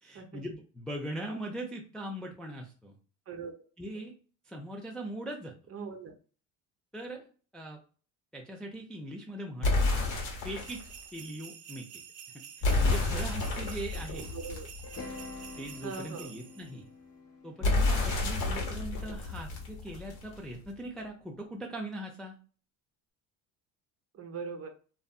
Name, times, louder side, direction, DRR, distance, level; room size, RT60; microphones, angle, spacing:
voice 1, 0.0-3.0 3.8-4.1 4.5-5.5 6.9-7.3 7.5-7.8 8.3-9.8 10.4-10.8 11.1-11.9 12.6-14.3 15.6-16.9 17.4-22.4, right 1 dB, ahead, 0 dB, 0.4 m, -40 dB
voice 2, 5.7-6.1 14.1-14.7 15.8-16.3 18.4-18.6 24.1-24.7, right 5 dB, 35° right, 5 dB, 0.7 m, -40 dB
sound 1, 9.6-10.9 12.6-15.3 17.6-20.3, left 2 dB, 65° left, 1.2 m, -30 dB
sound 2, 10.6-16.7, right 8 dB, 75° right, 0.6 m, -49 dB
sound 3, 14.8-19.0, left 3 dB, 35° left, 0.9 m, -47 dB
2.5 x 2.5 x 2.2 m, 0.38 s
supercardioid pair, 90°, 40 cm